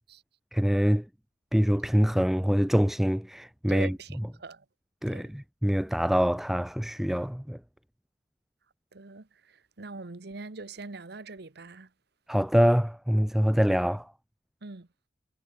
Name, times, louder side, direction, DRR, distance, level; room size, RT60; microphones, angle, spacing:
voice 1, 0.5-1.0 1.5-3.9 5.0-7.6 12.3-14.1, equal, ahead, 0.3 m, -25 dB
voice 2, 3.7-4.6 5.1-5.3 8.9-11.9 14.6-14.9, right 3 dB, 65° right, 1.1 m, -42 dB
head